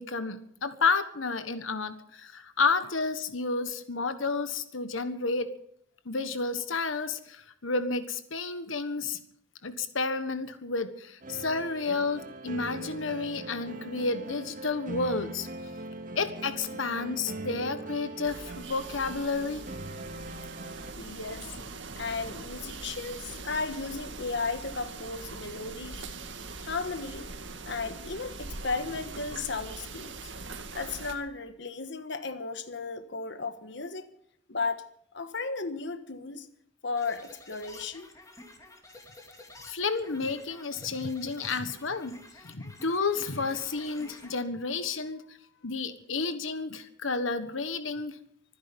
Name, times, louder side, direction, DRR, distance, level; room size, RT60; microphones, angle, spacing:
voice 1, 0.0-5.5 6.0-9.2 9.6-15.5 16.1-19.6 39.7-45.2 45.6-48.2, left 4 dB, 85° left, 10 dB, 1.4 m, -31 dB
sound 1, 11.2-20.9, right 2 dB, 45° right, 2.0 m, -41 dB
sound 2, 18.2-31.2, right 3 dB, 65° right, 2.2 m, -42 dB
voice 2, 21.0-21.5 22.0-26.0 26.6-27.3 27.7-30.1 30.5-34.1 34.5-34.9 35.1-36.5 36.8-38.1, left 4 dB, 60° left, 9 dB, 1.4 m, -35 dB
sound 3, 37.0-44.4, left 2 dB, 15° left, 3.0 m, -50 dB
25.0 x 10.5 x 5.3 m, 0.71 s
head